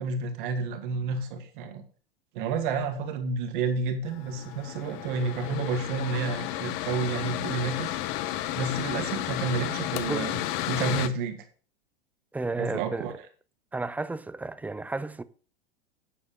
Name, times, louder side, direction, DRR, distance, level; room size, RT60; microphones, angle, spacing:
voice 1, 0.0-1.8 2.3-8.0 8.5-10.4 10.7-11.4 12.6-13.1, right 4 dB, 55° right, 2.1 m, -30 dB
Mechanical fan, 4.1-11.1, left 14 dB, 45° left, 0.8 m, -32 dB
voice 2, 12.3-13.1 13.7-15.2, right 3 dB, 5° right, 0.4 m, -32 dB
9.6 x 7.2 x 5.2 m
figure-of-eight pair, 90°, 30 cm